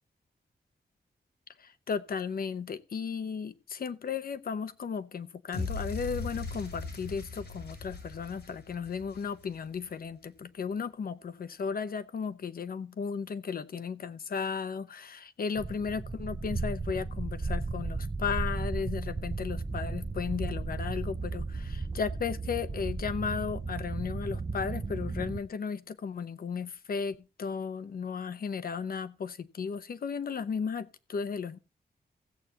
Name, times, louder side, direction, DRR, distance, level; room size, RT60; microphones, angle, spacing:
voice 1, 1.6-31.6, left 6 dB, 60° left, 0.8 m, -35 dB
sound 1, 5.5-9.8, left 3 dB, 90° left, 5.8 m, -39 dB
sound 2, 15.6-25.4, right 3 dB, 20° right, 0.5 m, -35 dB
16.5 x 8.1 x 2.8 m
wide cardioid pair, 155°, 17 cm